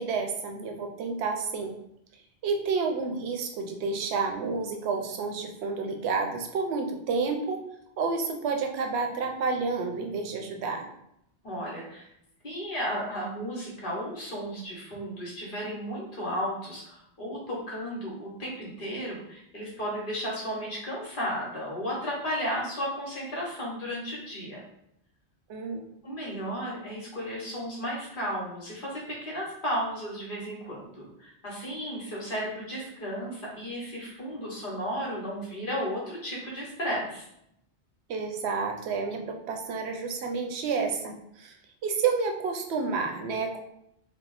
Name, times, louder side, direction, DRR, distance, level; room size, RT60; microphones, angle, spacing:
voice 1, 0.0-1.7 2.4-7.6 8.0-10.9 25.5-25.8 38.1-41.6 41.8-43.6, right 4 dB, 80° right, 3 dB, 0.8 m, -30 dB
voice 2, 11.4-12.1 12.4-24.6 26.0-37.3, equal, 55° left, -4 dB, 1.1 m, -34 dB
2.8 x 2.0 x 3.9 m, 0.77 s
omnidirectional pair, 1.1 m